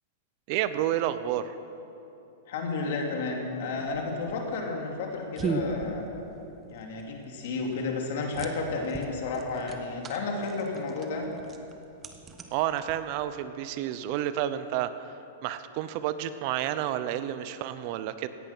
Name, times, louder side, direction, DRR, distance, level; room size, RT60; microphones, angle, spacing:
voice 1, 0.5-1.6 12.5-14.9 15.4-18.3, right 12 dB, 45° right, 12 dB, 0.7 m, -30 dB
voice 2, 2.5-6.0 6.7-11.3, left 3 dB, 65° left, 1 dB, 2.9 m, -32 dB
sound 1, 3.9-13.4, right 3 dB, 20° right, 1.0 m, -38 dB
17.0 x 10.5 x 6.1 m, 2.9 s
supercardioid pair, 150°, 0 cm